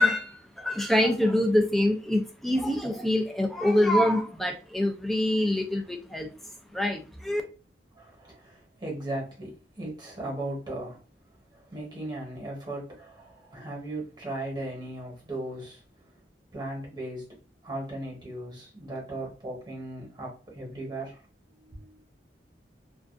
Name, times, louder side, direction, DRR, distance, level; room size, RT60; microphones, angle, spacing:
voice 1, 0.0-6.3 6.7-7.4, left 1 dB, ahead, 0.3 m, -25 dB
voice 2, 8.0-11.0 11.5-15.8 16.5-17.3 17.6-21.2 21.5-22.0, right 1 dB, 25° right, 1.0 m, -37 dB
2.5 x 2.3 x 2.4 m
head